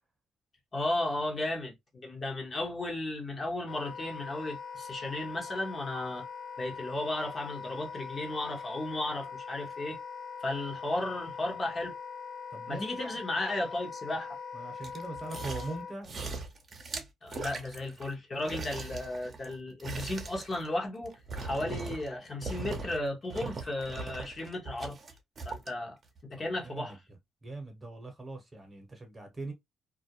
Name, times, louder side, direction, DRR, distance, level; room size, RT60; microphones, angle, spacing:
voice 1, 0.7-6.2 6.6-10.0 10.4-12.0 12.7-14.4 17.2-25.0 25.4-26.0 26.3-27.0, left 2 dB, 35° left, 0.9 m, -34 dB
Wind instrument woodwind instrument, 3.7-16.0, left 6 dB, 65° left, 0.5 m, -42 dB
voice 2, 12.5-13.2 14.5-16.1 26.6-27.0 27.4-29.5, right 2 dB, 20° right, 0.9 m, -41 dB
sound 1, 14.8-18.1 18.4-22.2 22.4-23.0 23.3-25.7 26.2-26.3, right 4 dB, 40° right, 0.7 m, -40 dB
2.4 x 2.1 x 2.8 m
cardioid pair, 90°, 0 cm